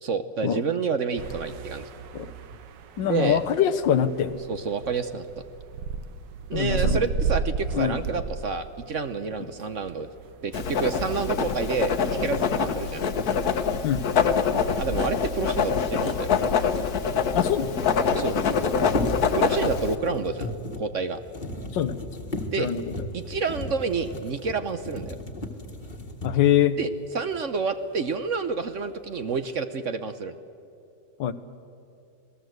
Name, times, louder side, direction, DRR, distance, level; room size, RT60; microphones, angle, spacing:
voice 1, 0.0-1.9 3.0-3.4 4.5-5.3 6.5-10.1 10.4-13.0 14.8-16.3 18.1-18.4 19.4-21.2 22.5-22.7 23.1-25.2 26.8-30.4, right 5 dB, 50° right, 10 dB, 1.1 m, -29 dB
sound 1, 1.2-12.8, right 5 dB, 80° right, 1.7 m, -34 dB
voice 2, 3.0-4.4 6.5-7.0 7.8-8.0 13.8-14.0 17.3-18.0 21.7-22.0 22.6-22.8 26.2-26.8 31.2-31.3, left 10 dB, 90° left, 13 dB, 1.7 m, -24 dB
Writing, 10.5-19.9, left 6 dB, 60° left, 1.6 m, -25 dB
sound 2, 18.4-26.6 27.3-27.4 27.9-28.5 28.9-29.4, left 1 dB, 25° left, 1.7 m, -35 dB
27.5 x 19.0 x 8.0 m, 2.6 s
omnidirectional pair, 1.9 m